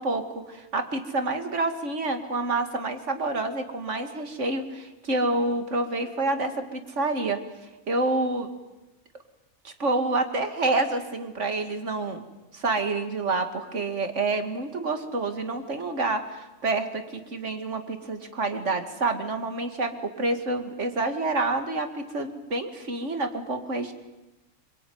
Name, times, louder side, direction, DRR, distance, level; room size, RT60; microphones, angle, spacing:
voice 1, 0.0-7.4 7.9-8.5 9.6-12.3 12.5-23.9, right 2 dB, 55° right, 7 dB, 2.6 m, -28 dB
26.0 x 23.5 x 9.6 m, 1.0 s
omnidirectional pair, 1.5 m